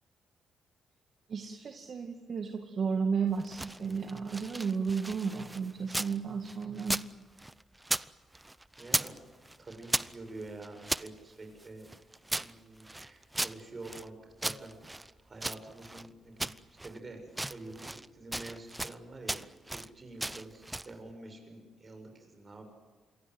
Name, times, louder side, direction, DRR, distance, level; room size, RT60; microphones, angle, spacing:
voice 1, 1.3-7.0, right 5 dB, 55° right, 5 dB, 2.2 m, -33 dB
sound 1, 3.3-6.2 6.4-8.1 8.3-9.2 9.4-11.1 11.6-14.1 14.4-16.1 16.4-17.0 17.3-18.1 18.3-19.0 19.3-19.9 20.2-20.9, right 1 dB, 10° right, 0.7 m, -36 dB
voice 2, 8.8-9.2 9.6-11.9 12.3-22.6, right 2 dB, 35° right, 5 dB, 7.3 m, -47 dB
27.5 x 22.5 x 8.0 m, 1.4 s
cardioid pair, 85°, 0 cm